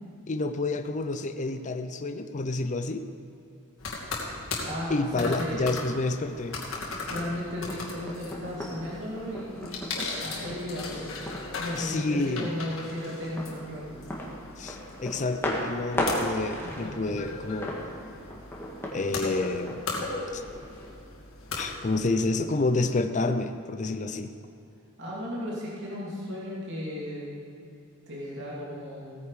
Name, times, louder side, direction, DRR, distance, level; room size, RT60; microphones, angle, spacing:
voice 1, 0.3-3.1 4.9-6.6 11.7-12.5 14.6-17.8 18.9-19.8 20.3-20.4 21.6-24.3, left 2 dB, 35° left, 8 dB, 0.5 m, -29 dB
sound 1, 3.8-22.2, left 3 dB, 60° left, 2.5 m, -38 dB
voice 2, 4.6-5.8 7.0-9.8 10.2-11.2 11.6-13.9 25.0-27.2 28.1-29.1, left 1 dB, 55° right, -6 dB, 2.7 m, -35 dB
sound 2, 6.0-20.9, equal, 10° left, 1.8 m, -38 dB
17.5 x 9.6 x 4.9 m, 2.7 s
head